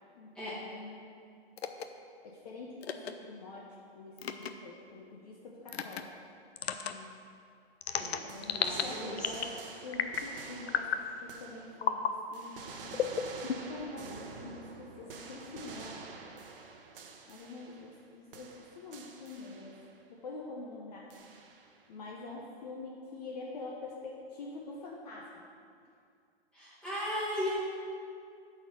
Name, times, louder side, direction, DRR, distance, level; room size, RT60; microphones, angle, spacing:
voice 1, 0.1-1.1 2.2-3.7 3.9-6.1 6.8-7.1 8.0-13.2 13.4-16.0 17.3-19.7 20.1-21.1 21.9-25.4, left 3 dB, 40° left, -3 dB, 0.8 m, -46 dB
sound 1, 1.6-1.9 2.8-3.1 4.2-4.5 5.7-6.0 6.6-6.9 7.8-8.8 9.2-9.6 9.9-10.3 10.7-11.1 11.8-12.1 12.9-13.8, left 8 dB, 70° left, 0.6 m, -32 dB
sound 2, 8.3-12.0 12.3-18.0 18.3-20.0 21.1-21.8, right 4 dB, 55° right, 0.9 m, -48 dB
voice 2, 8.5-9.3 26.5-27.5, equal, 5° left, -10 dB, 1.8 m, -36 dB
8.7 x 4.3 x 6.4 m, 2.4 s
hypercardioid pair, 160°, 32 cm